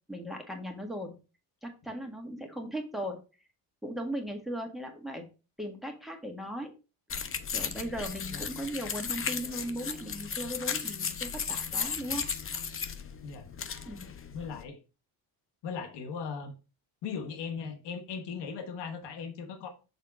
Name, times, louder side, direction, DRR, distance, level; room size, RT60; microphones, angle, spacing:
voice 1, 0.1-1.2 1.6-3.2 3.8-5.3 5.6-6.7 7.5-12.3 13.9-14.1, equal, ahead, 1.7 m, -37 dB
sound 1, 7.1-14.6, left 6 dB, 30° left, 0.7 m, -35 dB
voice 2, 14.3-14.8 15.6-16.5 17.0-19.7, left 6 dB, 85° left, 1.3 m, -38 dB
6.6 x 3.6 x 4.8 m
cardioid pair, 95°, 41 cm